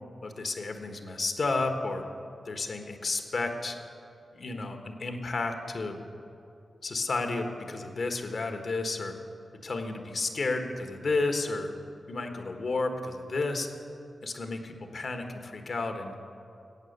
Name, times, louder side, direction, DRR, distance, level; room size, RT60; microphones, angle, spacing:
voice 1, 0.2-2.0 2.4-3.8 4.3-6.0 6.8-9.1 9.6-11.7 12.1-13.7 14.2-16.1, left 3 dB, 65° left, 5 dB, 1.3 m, -32 dB
14.0 x 8.5 x 6.6 m, 2.6 s
cardioid pair, 45°, 0 cm